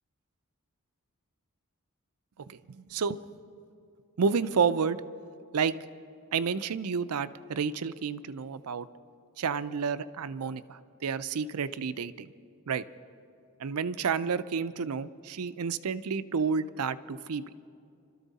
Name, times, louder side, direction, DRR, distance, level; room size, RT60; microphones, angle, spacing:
voice 1, 2.5-3.2 4.2-5.0 5.5-5.8 6.3-8.9 9.4-12.3 12.7-12.8 13.6-17.4, right 5 dB, 80° right, 14 dB, 0.5 m, -30 dB
26.5 x 13.0 x 4.1 m, 2.5 s
head